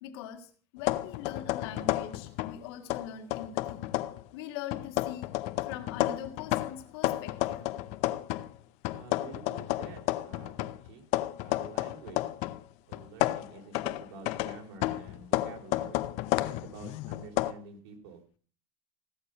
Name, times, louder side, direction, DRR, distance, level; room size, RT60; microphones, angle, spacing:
voice 1, 0.0-3.8 4.3-5.3 5.7-7.8, left 10 dB, 80° left, 6 dB, 2.1 m, -42 dB
sound 1, 0.8-2.6 2.9-4.2 4.7-8.5 8.8-12.6 12.9-17.5, left 17 dB, 55° left, 0.7 m, -31 dB
voice 2, 8.9-11.0 11.4-12.3 12.9-16.0 16.6-18.4, right 4 dB, 80° right, 3 dB, 3.7 m, -48 dB
16.5 x 6.5 x 5.6 m, 0.41 s
cardioid pair, 155°, 13 cm